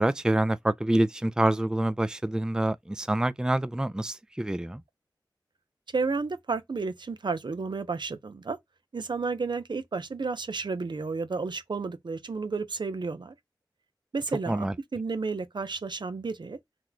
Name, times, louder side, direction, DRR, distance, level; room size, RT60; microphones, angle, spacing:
voice 1, 0.0-4.8 14.5-14.7, right 1 dB, 10° right, 0.3 m, -26 dB
voice 2, 5.9-8.6 8.9-13.3 14.1-14.7 14.9-16.6, right 4 dB, 75° right, 0.6 m, -32 dB
3.1 x 2.2 x 3.8 m
wide cardioid pair, 45°, 8 cm